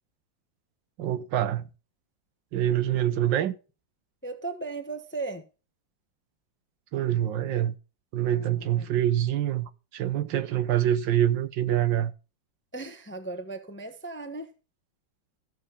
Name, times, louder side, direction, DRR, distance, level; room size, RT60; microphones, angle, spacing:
voice 1, 1.0-1.7 2.5-3.6 6.9-7.8 8.1-12.1, right 11 dB, 70° right, 1.4 m, -25 dB
voice 2, 4.2-5.4 8.3-8.9 12.7-14.5, right 3 dB, 10° left, 0.7 m, -37 dB
14.0 x 7.1 x 5.6 m
omnidirectional pair, 2.1 m